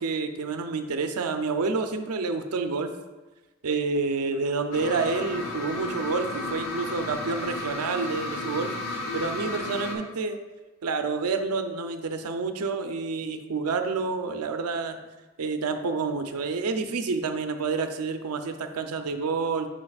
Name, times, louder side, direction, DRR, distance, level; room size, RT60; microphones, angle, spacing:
voice 1, 0.0-2.9 3.6-10.4 10.8-15.0 15.4-19.7, right 4 dB, 85° right, 7 dB, 0.5 m, -29 dB
sound 1, 4.7-9.9, left 2 dB, 85° left, 0.9 m, -33 dB
8.4 x 5.2 x 2.4 m, 1.2 s
head